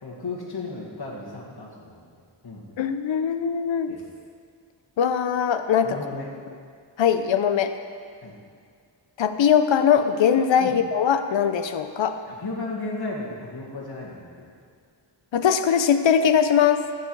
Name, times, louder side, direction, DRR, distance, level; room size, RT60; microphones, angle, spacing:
voice 1, 0.0-2.1 2.4-2.7 3.9-4.0 5.8-6.3 8.2-8.3 10.6-10.7 12.2-14.5, left 3 dB, 55° left, -5 dB, 1.9 m, -34 dB
voice 2, 2.8-3.9 5.0-6.0 7.0-7.7 9.2-12.2 15.3-16.8, left 8 dB, 70° left, 9 dB, 0.6 m, -21 dB
14.5 x 4.8 x 4.6 m, 2.1 s
wide cardioid pair, 50°, 46 cm